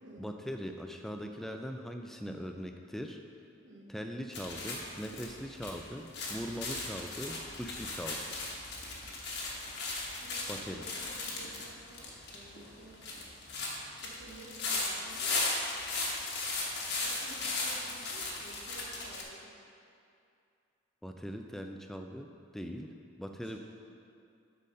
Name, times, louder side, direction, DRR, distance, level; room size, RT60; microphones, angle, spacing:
voice 1, 0.2-3.2 3.9-8.2 10.5-10.9 21.0-23.6, equal, ahead, 4 dB, 0.3 m, -41 dB
voice 2, 3.6-3.9 10.1-13.3 13.9-15.4 17.0-19.5 23.4-23.6, right 2 dB, 70° right, -3 dB, 1.1 m, -53 dB
sound 1, 4.3-19.2, left 3 dB, 55° left, 1.1 m, -37 dB
8.4 x 4.1 x 5.3 m, 2.5 s
head